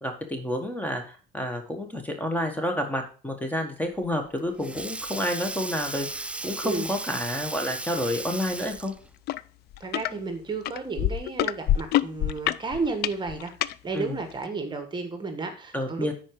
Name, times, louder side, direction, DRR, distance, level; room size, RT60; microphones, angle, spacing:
voice 1, 0.0-8.9 13.9-14.2 15.7-16.1, left 1 dB, 10° left, 5 dB, 1.5 m, -30 dB
Sink (filling or washing), 4.0-9.1, right 2 dB, 5° right, 0.3 m, -36 dB
sound 1, 9.3-9.4 9.7-10.1 10.7-13.7 14.4-14.5, left 13 dB, 70° left, 0.4 m, -25 dB
voice 2, 9.8-13.5 13.8-16.1, right 4 dB, 25° right, 7 dB, 1.4 m, -32 dB
10.0 x 4.5 x 4.7 m, 0.37 s
cardioid pair, 110°, 17 cm